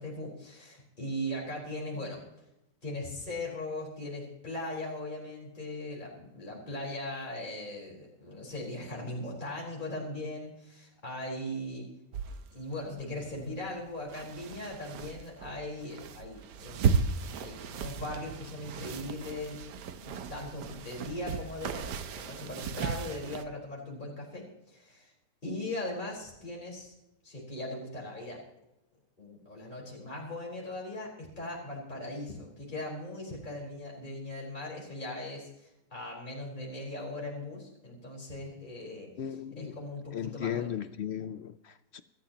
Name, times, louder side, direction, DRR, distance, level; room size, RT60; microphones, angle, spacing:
voice 1, 0.0-2.2 2.8-11.9 12.5-16.8 17.3-19.6 20.0-25.1 25.4-26.9 27.2-28.4 29.2-39.1 39.6-40.8, left 1 dB, 25° left, -3 dB, 4.6 m, -39 dB
sound 1, 12.1-23.4, right 6 dB, 80° right, 1.5 m, -35 dB
voice 2, 39.2-39.8 40.1-42.0, left 9 dB, 70° left, 13 dB, 0.6 m, -36 dB
23.5 x 14.0 x 2.9 m, 0.87 s
omnidirectional pair, 1.8 m